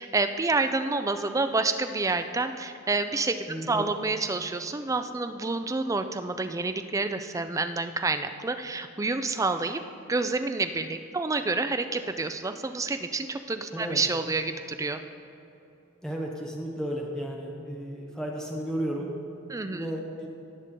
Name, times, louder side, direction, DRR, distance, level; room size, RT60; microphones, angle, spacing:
voice 1, 0.0-9.8 10.1-15.0 19.5-19.9, right 3 dB, 15° right, 8 dB, 0.3 m, -28 dB
voice 2, 3.5-3.8 13.7-14.0 16.0-19.1 19.7-20.3, equal, 5° left, -2 dB, 1.0 m, -33 dB
17.0 x 6.6 x 3.7 m, 3.0 s
head